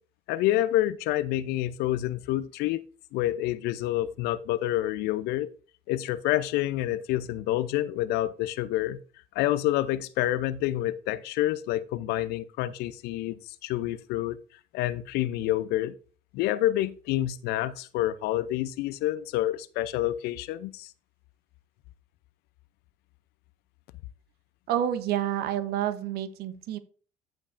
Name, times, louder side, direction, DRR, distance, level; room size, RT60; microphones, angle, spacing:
voice 1, 0.3-2.8 3.1-5.5 5.9-9.0 9.3-14.4 14.7-15.9 16.3-20.9, left 14 dB, 65° left, 0.5 m, -28 dB
voice 2, 24.7-26.8, right 11 dB, 65° right, 1.0 m, -29 dB
15.0 x 5.2 x 2.6 m
hypercardioid pair, 55°, 18 cm